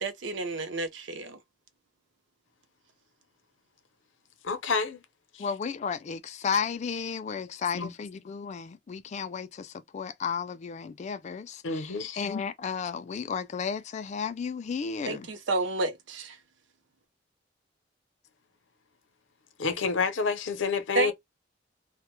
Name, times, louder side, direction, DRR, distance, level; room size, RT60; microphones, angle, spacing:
voice 1, 0.0-1.4 15.1-16.4 20.9-21.1, right 2 dB, 65° right, 0.5 m, -30 dB
voice 2, 4.4-5.0 5.3-5.5 7.7-7.9 11.6-12.2 19.6-21.1, left 5 dB, 75° left, 0.6 m, -29 dB
voice 3, 5.4-15.3, left 6 dB, 35° left, 0.3 m, -33 dB
2.1 x 2.0 x 3.0 m
head